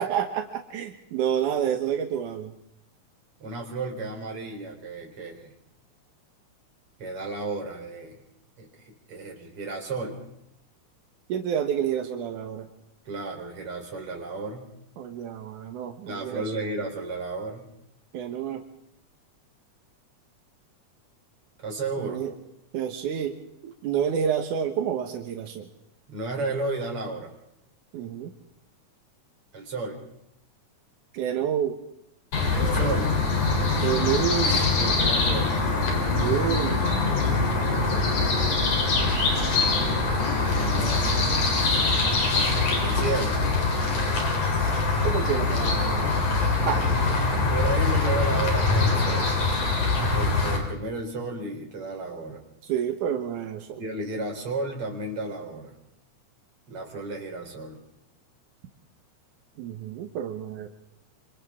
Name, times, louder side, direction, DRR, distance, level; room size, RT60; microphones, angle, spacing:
voice 1, 0.0-2.5 11.3-12.7 15.0-16.6 18.1-18.6 22.0-22.3 22.7-23.3 23.6-25.7 27.9-28.3 31.1-31.8 33.8-34.6 36.1-36.8 44.6-44.7 45.0-46.1 46.7-47.2 52.6-53.8 59.6-60.7, right 9 dB, 85° right, 5 dB, 2.7 m, -29 dB
voice 2, 3.4-5.5 7.0-8.2 8.6-10.2 13.1-14.7 16.1-17.7 21.6-22.2 26.1-27.3 29.5-30.0 32.5-33.1 34.7-35.6 39.4-40.0 40.4-41.3 42.8-43.4 47.5-49.3 50.0-52.4 53.8-55.7 56.7-57.8, right 3 dB, 45° right, 2 dB, 4.6 m, -33 dB
sound 1, 32.3-50.6, left 3 dB, 80° left, 5.3 m, -23 dB
27.0 x 26.5 x 3.7 m, 0.78 s
omnidirectional pair, 3.5 m